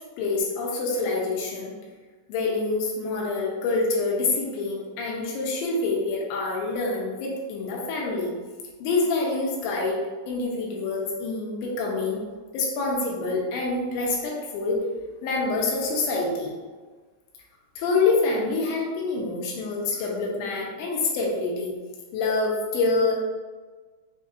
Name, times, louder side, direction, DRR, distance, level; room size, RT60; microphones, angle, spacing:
voice 1, 0.2-1.7 2.3-8.3 8.8-10.0 10.3-12.2 12.5-14.8 15.2-16.5 17.8-21.7 22.1-23.1, left 3 dB, 85° left, -2 dB, 3.1 m, -26 dB
6.8 x 2.5 x 2.7 m, 1.3 s
omnidirectional pair, 5.3 m